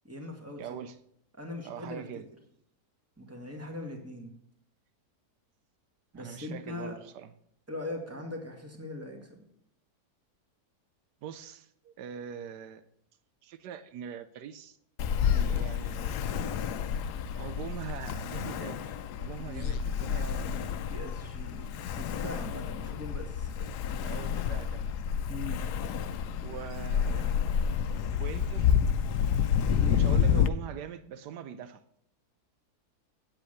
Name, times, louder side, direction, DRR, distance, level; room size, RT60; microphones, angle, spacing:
voice 1, 0.0-0.6 1.4-2.0 3.2-4.3 6.1-7.0 7.7-9.4 19.4-19.7 20.2-20.6 20.9-23.7 24.0-24.2 25.3-25.6 29.7-30.0, left 1 dB, 10° right, 2 dB, 1.8 m, -41 dB
voice 2, 0.6-1.0 1.6-2.3 6.1-7.3 11.2-12.8 13.4-14.8 15.3-16.5 17.3-18.9 19.2-20.6 24.0-24.9 26.4-27.6 28.2-28.7 29.9-31.8, right 8 dB, 85° right, 12 dB, 1.3 m, -42 dB
Ocean, 15.0-30.5, left 8 dB, 80° left, 1.2 m, -29 dB
8.8 x 8.1 x 6.5 m, 0.72 s
omnidirectional pair, 1.8 m